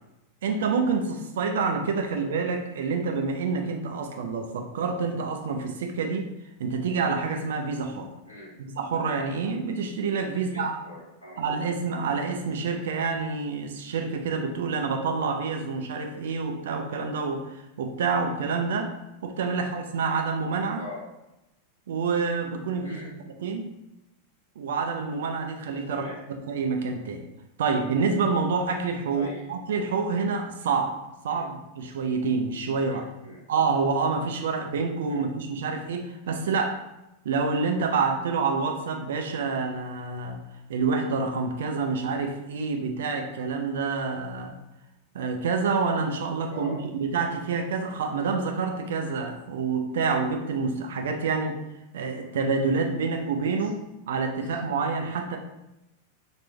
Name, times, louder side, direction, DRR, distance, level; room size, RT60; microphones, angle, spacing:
voice 1, 0.4-6.3 6.6-8.1 8.6-10.8 11.4-18.9 19.2-20.8 21.9-23.0 23.4-23.7 24.6-26.0 26.3-27.2 27.6-31.0 31.2-33.0 33.5-36.8 37.2-40.4 40.7-44.6 45.1-51.5 51.9-53.7 54.1-55.4, right 4 dB, 60° right, 4 dB, 0.5 m, -27 dB
voice 2, 10.3-11.0 11.2-11.4 20.7-21.0 22.8-23.1 25.8-26.2 29.1-29.4 31.3-31.5 32.9-33.4 35.1-35.2 46.5-46.8 53.6-53.7 54.4-54.6, left 1 dB, 70° left, -6 dB, 0.8 m, -42 dB
4.5 x 2.5 x 3.3 m, 0.93 s
figure-of-eight pair, 90°, 0 cm